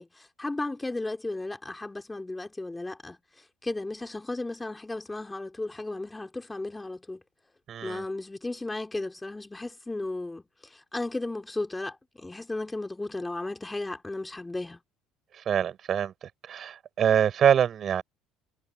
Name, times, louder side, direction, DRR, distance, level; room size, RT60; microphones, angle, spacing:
voice 1, 0.0-7.2 7.8-14.8, left 2 dB, 10° left, 3.2 m, -35 dB
voice 2, 7.7-8.0 15.5-16.1 16.5-18.0, right 9 dB, 45° right, 6.2 m, -24 dB
supercardioid pair, 100°, 0 cm